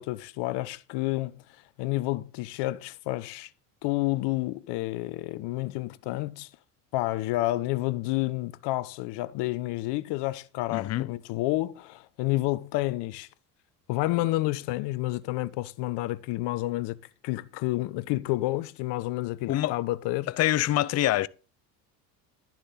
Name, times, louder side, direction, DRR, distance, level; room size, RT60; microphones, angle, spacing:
voice 1, 0.0-1.4 1.8-3.5 3.8-6.5 6.9-13.3 13.9-17.0 17.2-20.3, left 18 dB, 60° left, 0.9 m, -30 dB
voice 2, 10.7-11.1 19.5-19.8 20.4-21.3, left 14 dB, 35° left, 0.5 m, -25 dB
11.0 x 7.3 x 3.9 m
hypercardioid pair, 75°, 46 cm